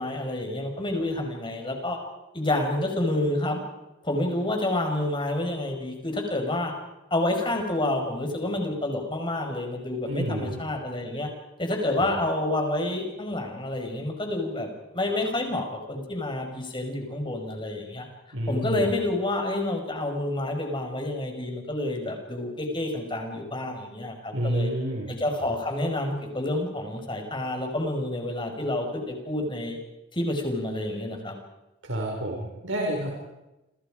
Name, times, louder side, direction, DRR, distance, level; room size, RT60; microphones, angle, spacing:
voice 1, 0.0-2.0 2.3-3.6 4.0-6.7 7.1-11.3 11.6-18.1 18.5-24.7 25.1-29.8 30.1-31.3, left 1 dB, 25° left, 4 dB, 5.4 m, -29 dB
voice 2, 10.1-10.6 12.0-12.1 18.3-18.9 24.3-25.1 25.4-25.5 31.8-33.2, right 1 dB, 85° right, -2 dB, 5.7 m, -29 dB
29.5 x 26.0 x 5.1 m, 0.98 s
head